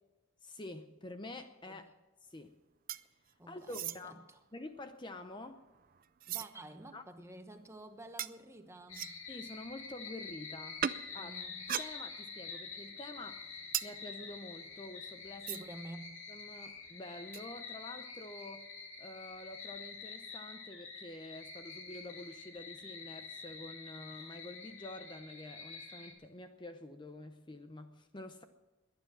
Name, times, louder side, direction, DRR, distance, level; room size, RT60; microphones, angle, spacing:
voice 1, 0.4-1.9 2.2-2.5 3.5-4.2 4.5-5.6 6.9-7.0 9.3-10.9 11.1-11.3 11.8-13.4 13.8-15.6 16.3-18.7 19.0-28.4, left 2 dB, 20° left, 8 dB, 0.7 m, -48 dB
sound 1, 2.9-3.3 3.6-4.0 4.8-6.5 7.1-7.2 8.2-8.4 8.9-9.3 10.8-11.0 11.6-12.4 12.7-15.9 16.1-16.2 16.4-16.7 17.3-17.5, right 10 dB, 45° right, 0.4 m, -41 dB
voice 2, 3.4-4.4 6.3-9.1 11.1-11.7 15.4-16.2, right 1 dB, 15° right, 7 dB, 1.0 m, -50 dB
sound 2, 8.9-26.1, left 5 dB, 65° left, 2.9 m, -47 dB
21.5 x 9.8 x 6.2 m, 1.1 s
head